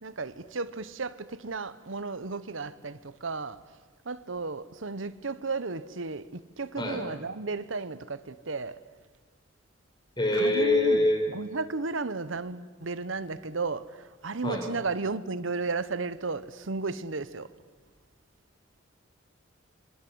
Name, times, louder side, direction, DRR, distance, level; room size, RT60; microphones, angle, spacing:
voice 1, 0.0-3.6 4.1-8.8 10.3-11.0 11.3-17.5, right 3 dB, 75° right, 1.0 m, -34 dB
voice 2, 10.2-11.2 14.4-14.7, left 2 dB, 25° left, 5.8 m, -24 dB
26.5 x 26.0 x 8.0 m
head